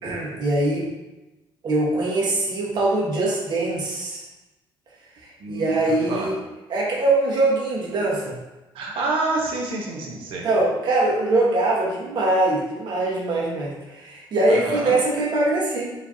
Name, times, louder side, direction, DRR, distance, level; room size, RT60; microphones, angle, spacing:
voice 1, 0.0-0.9 1.6-4.2 5.2-6.4 6.7-8.4 10.4-15.9, right 2 dB, 50° right, -4 dB, 1.4 m, -22 dB
voice 2, 5.4-6.3 8.7-10.5 14.5-14.9, right 2 dB, 75° right, 0 dB, 1.0 m, -28 dB
5.0 x 3.2 x 2.8 m, 1.1 s
cardioid pair, 120°, 9 cm